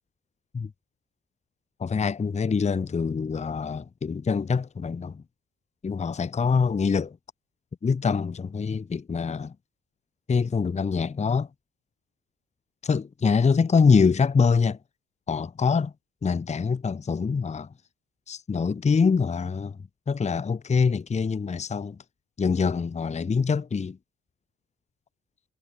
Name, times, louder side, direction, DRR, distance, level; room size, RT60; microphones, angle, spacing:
voice 1, 1.8-5.2 5.8-7.2 7.8-9.5 10.3-11.5 12.8-14.8 15.3-15.9 16.2-17.7 18.3-19.8 20.1-22.0 22.4-24.0, left 5 dB, 25° left, 0.7 m, -24 dB
cardioid pair, 90°, 30 cm